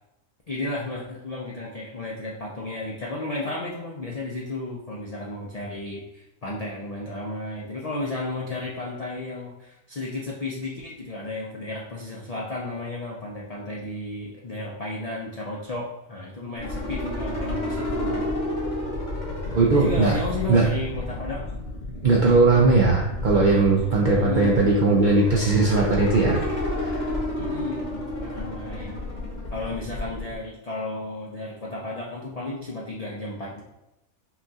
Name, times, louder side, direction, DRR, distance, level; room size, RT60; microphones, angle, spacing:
voice 1, 0.5-18.3 19.5-21.4 24.1-24.8 27.4-29.0 29.5-33.6, left 2 dB, 75° left, -3 dB, 0.3 m, -33 dB
sound 1, 16.6-30.3, left 1 dB, 40° left, 0.9 m, -31 dB
voice 2, 19.5-20.2 20.5-20.7 22.0-26.4 26.8-27.1, right 3 dB, 70° right, -3 dB, 0.4 m, -19 dB
5.7 x 2.4 x 2.7 m, 0.92 s
omnidirectional pair, 1.4 m